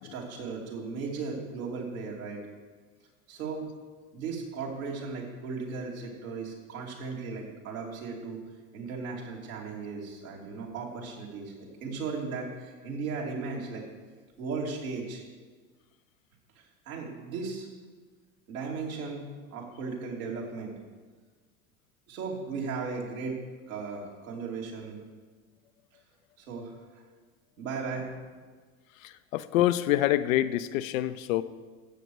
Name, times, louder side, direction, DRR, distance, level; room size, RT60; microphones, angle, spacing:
voice 1, 0.1-2.4 3.3-3.7 4.1-8.4 8.7-13.8 14.4-15.2 16.6-17.7 18.5-20.7 22.1-23.4 23.7-25.0 26.4-26.8 27.6-28.3, right 4 dB, 75° right, -2 dB, 3.0 m, -36 dB
voice 2, 29.0-31.4, left 13 dB, 70° left, 13 dB, 0.7 m, -26 dB
13.5 x 7.9 x 4.8 m, 1.4 s
hypercardioid pair, 85°, 42 cm